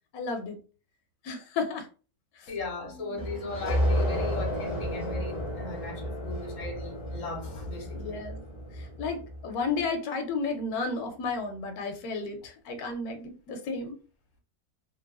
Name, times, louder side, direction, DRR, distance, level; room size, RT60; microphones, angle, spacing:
voice 1, 0.1-0.6 1.2-1.9 2.9-3.2 7.9-8.4 8.8-14.0, left 4 dB, 80° left, 4 dB, 1.1 m, -33 dB
voice 2, 2.5-8.2, left 3 dB, 60° left, 0 dB, 1.3 m, -38 dB
sound 1, 3.2-9.5, equal, 30° left, 0.6 m, -32 dB
2.8 x 2.3 x 2.2 m, 0.37 s
omnidirectional pair, 1.6 m